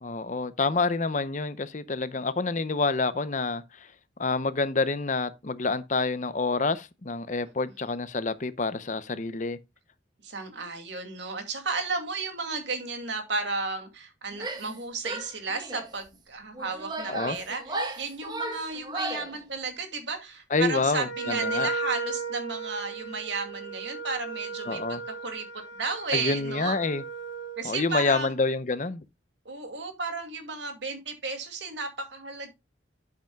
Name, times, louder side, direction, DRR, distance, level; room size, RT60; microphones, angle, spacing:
voice 1, 0.0-3.6 4.2-9.6 17.1-17.4 20.5-21.7 24.7-25.0 26.1-27.0 27.6-29.0, left 3 dB, 40° left, 0.7 m, -27 dB
voice 2, 10.2-25.5 25.7-26.8 27.6-28.3 29.4-32.5, right 4 dB, 75° right, 2.4 m, -33 dB
Female speech woman speaking / Yell, 14.3-14.8 15.0-15.9 16.5-19.4, right 2 dB, 20° right, 1.1 m, -35 dB
Wind instrument woodwind instrument, 21.0-27.7, right 3 dB, 65° left, 2.6 m, -35 dB
10.5 x 8.2 x 2.3 m
head